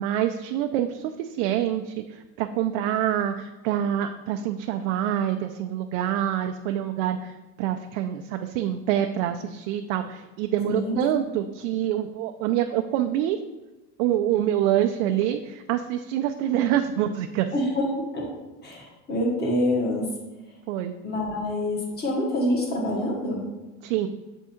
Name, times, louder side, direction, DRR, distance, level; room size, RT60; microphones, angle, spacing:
voice 1, 0.0-13.4 14.0-17.5 20.7-20.9 23.8-24.1, right 11 dB, 65° right, 6 dB, 0.5 m, -26 dB
voice 2, 10.7-11.0 17.5-17.9 18.1-18.3 18.6-20.0 21.0-23.4, left 1 dB, 25° left, -1 dB, 1.5 m, -26 dB
7.4 x 3.6 x 4.3 m, 1.1 s
supercardioid pair, 145°, 40 cm